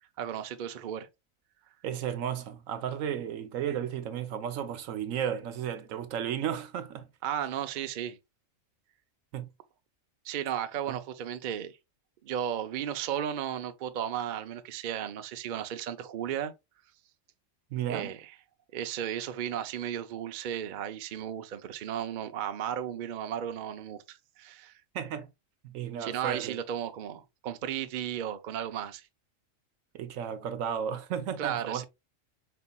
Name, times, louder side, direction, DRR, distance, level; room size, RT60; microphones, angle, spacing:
voice 1, 0.2-1.1 7.2-8.2 10.2-11.7 12.2-16.5 17.9-18.3 18.7-24.7 26.0-29.0 31.4-31.8, right 9 dB, 55° right, 0.5 m, -34 dB
voice 2, 1.8-7.1 9.3-9.5 10.9-11.0 17.7-18.1 24.9-25.3 25.6-26.6 29.9-31.8, right 9 dB, 80° right, 1.1 m, -33 dB
4.4 x 4.1 x 2.2 m
omnidirectional pair, 1.4 m